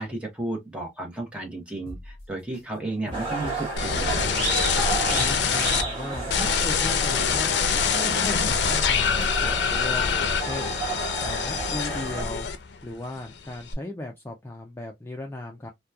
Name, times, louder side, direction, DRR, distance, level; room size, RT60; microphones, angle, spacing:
voice 1, 0.0-4.3, right 2 dB, 5° right, 0.9 m, -33 dB
sound 1, 1.9-2.6 3.1-4.0 4.4-5.3 5.8-6.7 7.1-8.1 8.5-9.4 9.9-10.8 11.2-12.1 12.6-12.7, left 1 dB, 60° left, 0.8 m, -41 dB
sound 2, 3.1-12.2, right 2 dB, 30° right, 1.2 m, -31 dB
sound 3, 3.8-5.8 6.3-12.9 13.2-13.7, left 6 dB, 75° left, 0.4 m, -25 dB
voice 2, 5.1-10.8 11.2-12.5 12.8-15.7, left 1 dB, 15° left, 0.3 m, -37 dB
2.8 x 2.2 x 2.2 m
head